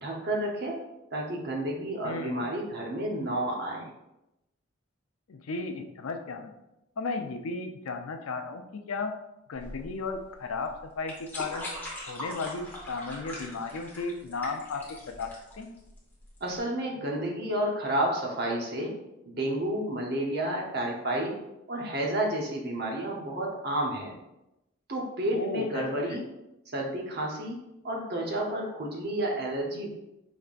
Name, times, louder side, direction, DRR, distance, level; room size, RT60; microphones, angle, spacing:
voice 1, 0.0-0.8 1.1-3.9 16.4-18.9 19.3-21.4 21.7-24.1 24.9-26.2 26.7-27.6 27.8-29.9, right 1 dB, 50° right, -1 dB, 0.9 m, -30 dB
voice 2, 2.0-2.4 5.3-6.5 7.0-9.1 9.5-11.6 12.1-15.3 15.5-15.7 25.3-26.2, left 3 dB, 85° left, 6 dB, 0.5 m, -35 dB
sound 1, 9.5-16.6, left 1 dB, 10° left, 0.9 m, -41 dB
5.3 x 3.4 x 2.5 m, 0.91 s
head